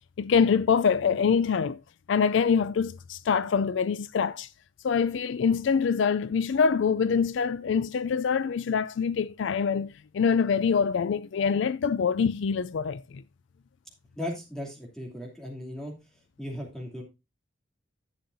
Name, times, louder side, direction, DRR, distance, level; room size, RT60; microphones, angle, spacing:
voice 1, 0.2-1.8 2.1-4.5 4.8-13.2, left 6 dB, 65° left, 0.4 m, -25 dB
voice 2, 14.1-15.9 16.4-17.0, left 1 dB, 5° left, 2.8 m, -36 dB
11.5 x 8.5 x 2.6 m
head